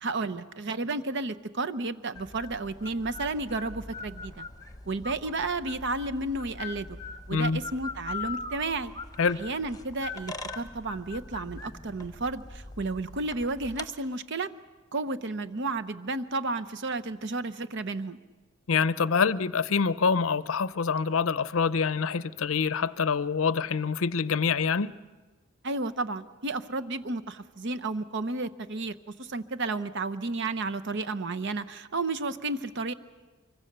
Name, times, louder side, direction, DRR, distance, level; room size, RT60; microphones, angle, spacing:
voice 1, 0.0-4.4 4.9-7.0 7.3-8.9 9.4-14.5 14.9-18.2 25.6-32.9, right 3 dB, 60° right, 0.8 m, -32 dB
sound 1, 2.1-13.9, left 3 dB, 20° left, 0.9 m, -41 dB
voice 2, 7.3-7.6 9.2-9.4 18.7-24.9, left 5 dB, 80° left, 0.6 m, -26 dB
24.5 x 23.5 x 6.7 m
head